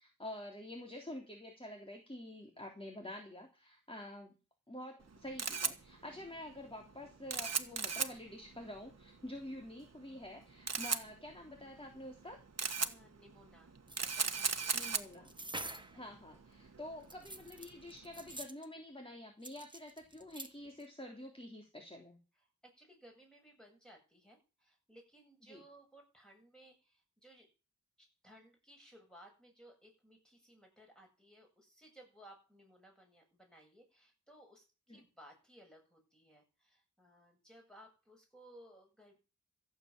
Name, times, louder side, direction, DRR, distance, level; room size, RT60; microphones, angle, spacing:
voice 1, 0.0-4.3 4.7-12.4 14.7-15.4 15.9-22.2 25.5-25.6 34.9-35.0, left 1 dB, 15° left, 2 dB, 3.5 m, -48 dB
Camera, 5.0-18.4, right 5 dB, 55° right, 1.5 m, -39 dB
voice 2, 12.8-13.7 14.0-14.9 15.9-16.1 22.4-27.5 28.0-39.2, right 1 dB, ahead, 1 dB, 7.9 m, -60 dB
sound 1, 13.9-16.0 17.0-18.7 19.4-20.5 20.8-20.9, right 2 dB, 15° right, 1.7 m, -47 dB
15.5 x 8.2 x 7.5 m, 0.33 s
wide cardioid pair, 60°, 31 cm